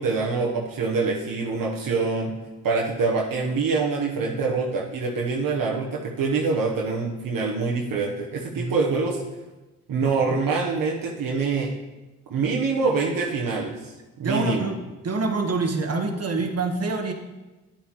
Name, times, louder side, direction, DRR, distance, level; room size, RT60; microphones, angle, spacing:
voice 1, 0.0-2.3 2.6-9.2 9.9-11.7 12.3-13.9 14.2-14.7, right 4 dB, 60° right, -2 dB, 1.2 m, -25 dB
voice 2, 8.5-8.9 14.2-14.8 15.0-17.1, right 3 dB, 40° right, 3 dB, 1.5 m, -26 dB
9.1 x 8.6 x 3.1 m, 1.1 s
supercardioid pair, 55°, 37 cm